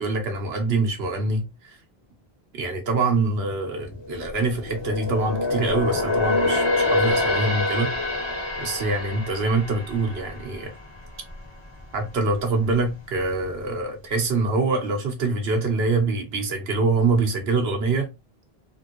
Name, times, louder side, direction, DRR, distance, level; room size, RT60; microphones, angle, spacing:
voice 1, 0.0-1.8 2.5-7.9 8.6-10.7 11.9-18.1, right 3 dB, 85° right, 1.2 m, -25 dB
sound 1, 3.9-11.4 11.8-12.0 12.6-13.3 13.6-13.7, left 2 dB, 25° left, 1.3 m, -26 dB
3.5 x 2.6 x 2.9 m
omnidirectional pair, 1.0 m